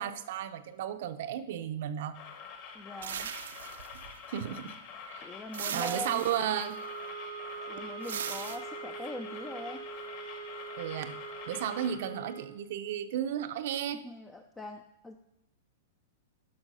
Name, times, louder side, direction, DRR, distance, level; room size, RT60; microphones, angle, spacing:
voice 1, 0.0-2.2 4.3-4.8 5.1-5.3 5.7-6.8 10.8-11.2 11.5-14.1, right 10 dB, 55° right, 11 dB, 0.7 m, -34 dB
sound 1, 2.1-12.0, left 5 dB, 35° left, 1.4 m, -46 dB
voice 2, 2.7-3.3 5.2-6.3 7.7-9.8 13.9-15.2, left 1 dB, 10° left, 5 dB, 0.4 m, -42 dB
sound 2, 3.0-4.4 5.5-6.7 8.0-8.6, right 8 dB, 90° right, 0.8 m, -39 dB
sound 3, 5.6-12.6, right 5 dB, 70° left, 2.7 m, -43 dB
11.0 x 6.2 x 5.5 m, 0.86 s
supercardioid pair, 165°, 0 cm